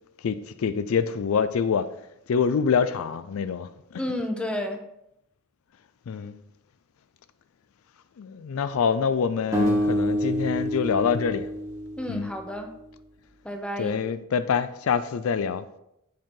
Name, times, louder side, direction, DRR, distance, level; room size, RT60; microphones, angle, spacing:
voice 1, 0.2-1.9 2.3-4.1 6.1-6.4 8.2-11.5 12.1-12.3 13.8-15.8, left 6 dB, 80° left, 0.4 m, -26 dB
voice 2, 4.0-4.8 12.0-12.7 13.4-14.0, left 1 dB, 5° left, 0.7 m, -31 dB
sound 1, 9.5-12.7, equal, 15° right, 1.3 m, -27 dB
7.5 x 4.5 x 3.7 m
head